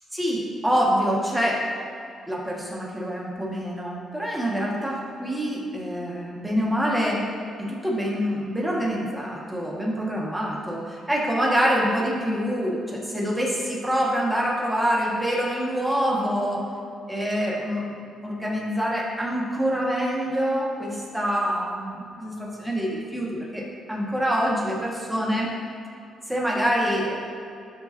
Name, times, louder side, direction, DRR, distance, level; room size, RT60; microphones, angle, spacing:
voice 1, 0.1-1.7 2.3-7.3 7.6-16.6 17.1-25.5 26.3-27.2, equal, 5° right, -4 dB, 1.8 m, -26 dB
12.5 x 5.7 x 2.9 m, 2.5 s
cardioid pair, 90°, 0 cm